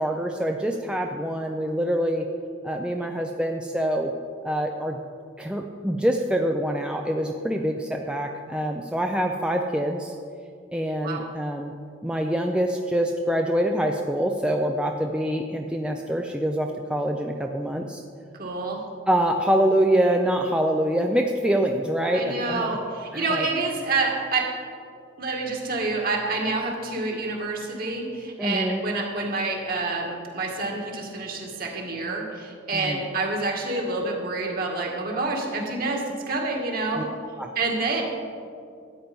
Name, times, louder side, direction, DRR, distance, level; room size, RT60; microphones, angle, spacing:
voice 1, 0.0-2.2 2.6-4.1 4.4-5.0 5.4-10.2 10.7-11.7 12.0-18.0 19.1-22.8 23.1-23.5 28.4-28.8 32.7-33.0 37.0-37.1 37.4-37.5, right 1 dB, 5° right, 2 dB, 0.5 m, -25 dB
voice 2, 18.4-18.9 22.1-24.5 25.2-37.0 37.6-38.0, right 3 dB, 50° right, 0 dB, 2.1 m, -28 dB
13.0 x 9.2 x 5.4 m, 2.3 s
head